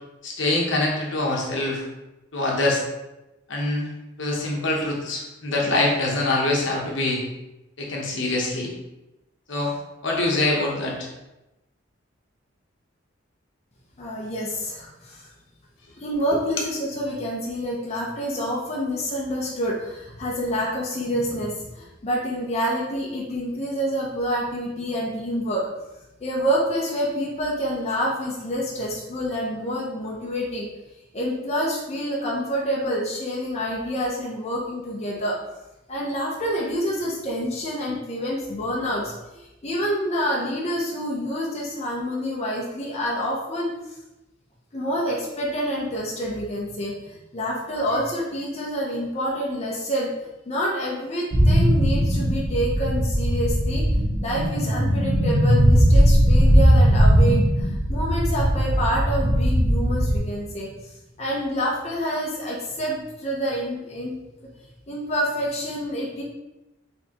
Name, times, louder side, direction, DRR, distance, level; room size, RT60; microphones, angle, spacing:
voice 1, 0.2-1.8 2.3-2.8 3.5-3.9 4.2-7.2 7.8-8.7 9.5-9.8 10.0-11.1 16.3-16.4, left 2 dB, 65° left, -2 dB, 1.0 m, -24 dB
voice 2, 14.0-15.3 16.0-25.7 26.2-30.7 31.1-35.4 35.9-43.7 44.7-50.1 50.5-53.8 54.2-64.1 64.9-66.2, equal, 35° left, -4 dB, 0.8 m, -27 dB
sound 1, 51.3-60.2, equal, 45° right, 0.9 m, -19 dB
4.5 x 3.5 x 2.9 m, 0.97 s
head